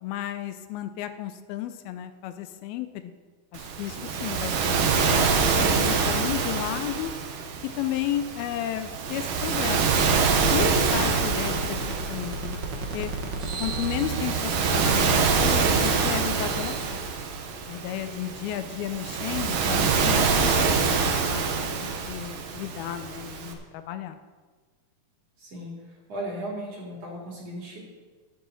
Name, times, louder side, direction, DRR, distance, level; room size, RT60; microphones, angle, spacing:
voice 1, 0.0-3.1 3.5-7.1 7.8-10.2 10.5-11.8 12.1-12.6 12.9-13.1 13.6-17.0 17.7-24.2, left 11 dB, 85° left, 10 dB, 2.6 m, -33 dB
Waves surf, 3.6-23.5, right 5 dB, 70° right, 2.6 m, -26 dB
sound 1, 9.9-18.0, right 4 dB, 90° right, 0.9 m, -33 dB
voice 2, 25.4-25.7 26.1-27.8, right 1 dB, 45° right, -3 dB, 3.7 m, -36 dB
14.0 x 11.0 x 4.1 m, 1.4 s
omnidirectional pair, 4.3 m